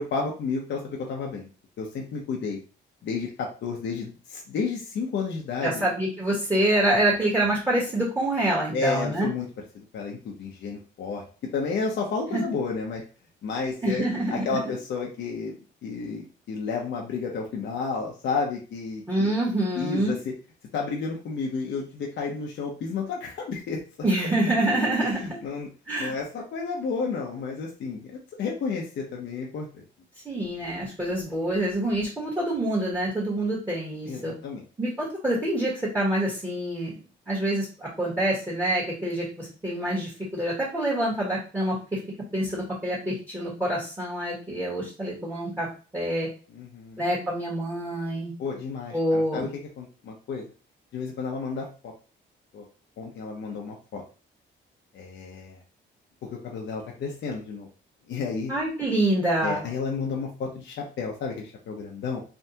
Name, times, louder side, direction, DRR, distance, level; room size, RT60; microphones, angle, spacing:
voice 1, 0.0-1.5 1.8-2.6 3.0-5.8 8.7-9.5 9.7-11.2 11.5-13.0 13.4-15.6 15.8-19.3 19.8-20.2 20.7-23.8 25.0-25.7 26.0-29.8 34.1-34.6 46.5-47.0 48.4-49.5 49.8-50.4 50.9-51.9 52.5-52.6 53.0-54.0 54.9-55.6 56.3-57.7 58.1-58.5 59.4-62.2, left 4 dB, 65° left, -1 dB, 0.8 m, -31 dB
voice 2, 5.6-9.3 12.3-12.4 13.8-14.7 19.1-20.1 24.0-25.4 25.9-26.1 30.2-34.3 34.8-37.0 37.3-42.0 42.3-45.7 45.9-46.3 47.0-48.3 48.9-49.4 58.5-59.6, right 1 dB, 15° right, -6 dB, 1.5 m, -26 dB
3.4 x 2.4 x 2.8 m, 0.36 s
cardioid pair, 90°, 20 cm